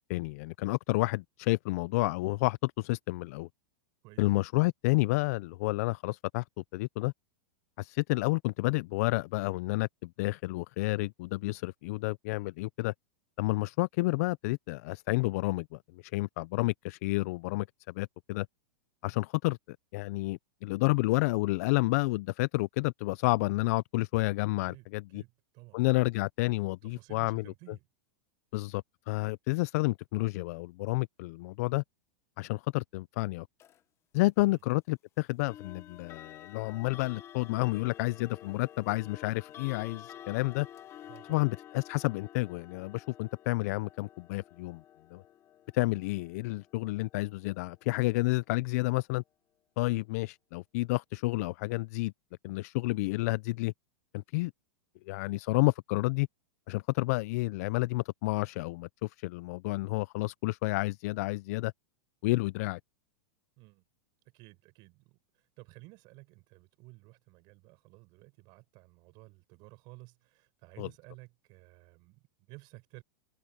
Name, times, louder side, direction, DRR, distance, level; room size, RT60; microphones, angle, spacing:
voice 1, 0.1-3.5 4.2-6.4 6.7-7.1 7.8-12.9 13.4-18.5 19.0-19.6 19.9-25.2 25.7-27.4 28.5-31.8 32.4-33.5 34.1-40.7 41.3-44.8 45.1-45.2 45.7-49.2 49.8-52.1 52.4-53.7 54.1-54.5 55.1-56.3 56.7-61.7 62.2-62.8 70.8-70.9, left 22 dB, 50° left, 0.3 m, -30 dB
voice 2, 25.1-25.8 26.8-27.9 34.4-34.6 41.0-41.5 63.6-63.8 64.3-73.0, right 25 dB, 40° right, 7.0 m, -54 dB
sound 1, 33.6-33.8 35.5-48.3, left 11 dB, 25° left, 0.9 m, -51 dB
supercardioid pair, 150°, 11 cm